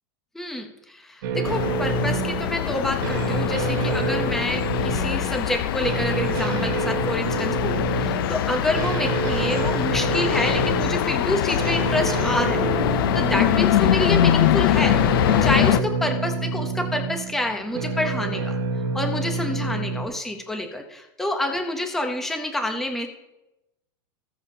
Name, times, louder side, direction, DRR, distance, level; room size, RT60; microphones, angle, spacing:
voice 1, 0.3-12.7 13.1-15.0 15.4-18.5 18.9-23.1, left 1 dB, 5° left, 4 dB, 0.7 m, -28 dB
sound 1, 1.2-20.1, right 4 dB, 65° right, 1.5 m, -28 dB
sound 2, 1.4-15.8, left 12 dB, 75° left, 0.5 m, -23 dB
19.5 x 7.0 x 2.7 m, 0.93 s
supercardioid pair, 170°, 12 cm